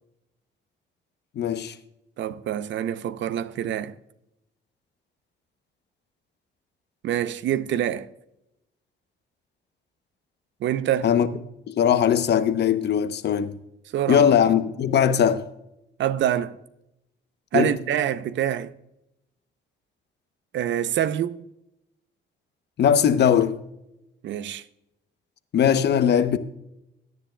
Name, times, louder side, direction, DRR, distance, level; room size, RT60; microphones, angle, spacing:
voice 1, 1.4-1.7 11.0-11.3 11.7-13.5 14.1-15.4 17.5-17.7 22.8-23.5 25.5-26.4, left 8 dB, 60° left, 0.8 m, -20 dB
voice 2, 2.2-3.9 7.0-8.1 10.6-11.1 13.9-14.3 16.0-16.6 17.5-18.7 20.5-21.4 24.2-24.6, right 10 dB, 70° right, 0.6 m, -26 dB
17.0 x 10.0 x 2.2 m
cardioid pair, 90°, 20 cm